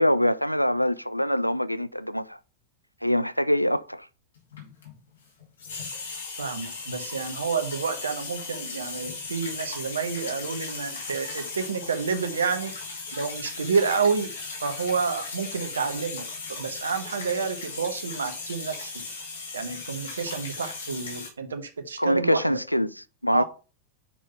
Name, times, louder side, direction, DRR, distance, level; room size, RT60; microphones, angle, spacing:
voice 1, 0.0-2.4 3.0-4.1 22.0-23.4, equal, 90° left, 0.3 m, -24 dB
sound 1, 4.4-5.1 5.4-21.3, left 4 dB, 65° left, 3.1 m, -37 dB
voice 2, 6.4-12.7 13.1-14.3 14.6-18.9 19.5-22.6 23.3-23.4, right 5 dB, 70° right, 1.0 m, -29 dB
5.5 x 5.0 x 5.5 m
figure-of-eight pair, 90°, 0 cm